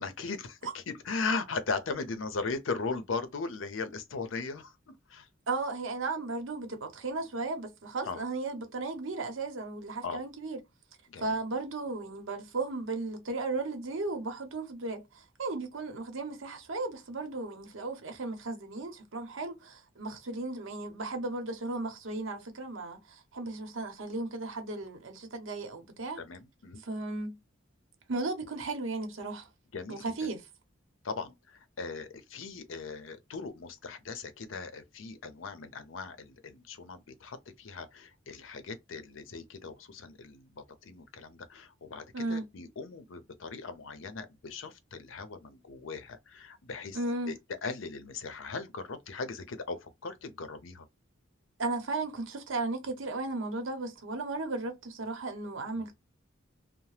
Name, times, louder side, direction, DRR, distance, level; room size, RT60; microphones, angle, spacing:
voice 1, 0.0-5.3 8.0-8.2 10.0-10.2 11.1-11.4 26.2-26.8 29.7-30.0 31.0-47.0 47.3-50.8 55.8-55.9, left 4 dB, 70° left, 0.6 m, -38 dB
voice 2, 5.5-10.6 11.2-26.2 26.8-27.4 28.1-29.5 29.9-30.4 42.1-42.5 46.9-47.4 51.6-55.9, right 3 dB, 75° right, 0.8 m, -35 dB
2.8 x 2.0 x 3.1 m
head